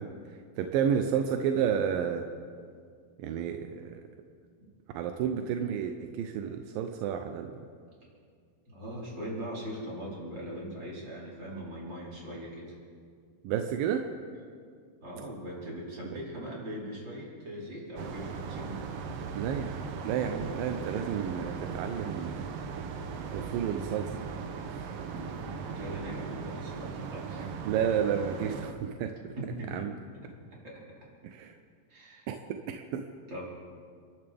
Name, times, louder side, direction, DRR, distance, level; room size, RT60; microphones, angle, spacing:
voice 1, 0.0-2.3 3.2-4.1 4.9-7.6 13.4-14.1 16.0-16.2 19.3-22.5 23.3-24.2 24.7-25.3 27.7-29.4 29.7-29.9 31.2-31.6 32.3-33.1, right 8 dB, 90° right, 5 dB, 2.5 m, -31 dB
voice 2, 8.7-12.7 15.0-18.8 25.1-27.4 29.4-30.3 30.6-30.8 31.9-32.3 33.3-33.4, equal, 30° right, -6 dB, 4.9 m, -40 dB
sound 1, 18.0-28.7, right 5 dB, 70° right, 1.4 m, -38 dB
29.5 x 13.0 x 3.5 m, 2.1 s
omnidirectional pair, 3.9 m